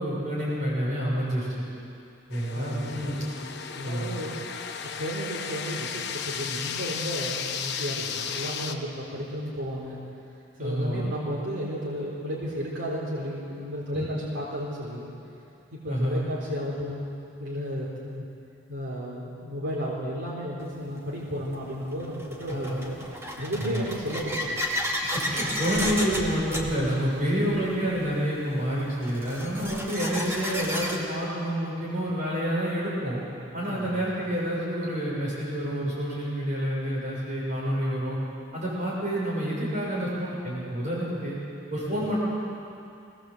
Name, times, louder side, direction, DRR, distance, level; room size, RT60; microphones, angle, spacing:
voice 1, 0.0-1.6 2.3-3.2 3.8-4.2 10.6-11.1 13.9-14.1 15.9-16.3 22.5-22.8 23.6-23.8 25.0-33.2 33.5-38.2 38.5-41.4 41.7-42.2, equal, 40° right, -6 dB, 7.1 m, -28 dB
sound 1, 2.3-8.8, left 7 dB, 60° left, 1.2 m, -34 dB
voice 2, 2.4-3.0 3.7-10.0 10.6-15.1 15.7-17.1 17.4-18.3 18.7-23.0 23.4-24.5 33.7-33.9, equal, 65° right, -6 dB, 4.0 m, -33 dB
sound 2, 20.6-20.7 21.5-31.0, equal, 15° right, 2.5 m, -33 dB
22.0 x 19.0 x 7.9 m, 2.6 s
head